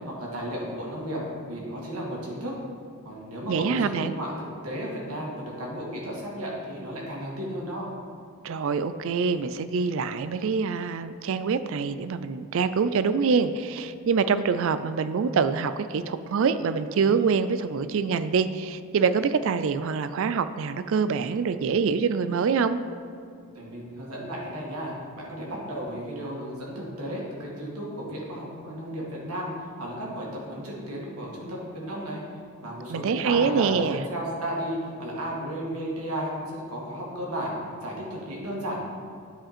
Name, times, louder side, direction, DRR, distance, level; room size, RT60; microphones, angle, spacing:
voice 1, 0.1-1.2 1.5-2.5 3.1-7.9 23.5-32.2 32.6-37.5 37.8-38.8, equal, 85° right, -3 dB, 1.9 m, -34 dB
voice 2, 3.5-4.2 8.4-22.8 32.9-34.0, right 5 dB, 60° right, 12 dB, 0.3 m, -25 dB
10.0 x 5.0 x 4.3 m, 2.3 s
head